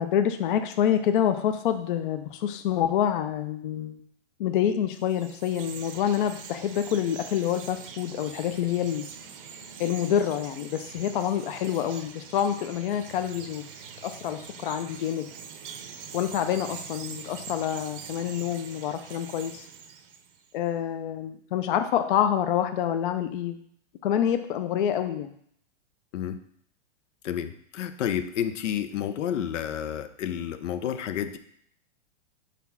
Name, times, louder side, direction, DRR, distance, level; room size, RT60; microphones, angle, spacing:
voice 1, 0.0-4.0 4.4-9.1 9.8-13.7 14.0-15.3 16.1-19.7 20.5-23.6 24.0-25.3, left 9 dB, 45° left, 8 dB, 0.5 m, -27 dB
Chirp tweet, 4.9-20.5, right 6 dB, 50° right, 0.7 m, -44 dB
voice 2, 27.2-31.4, left 9 dB, 80° left, 11 dB, 0.7 m, -30 dB
4.8 x 4.2 x 5.6 m, 0.65 s
supercardioid pair, 160°, 36 cm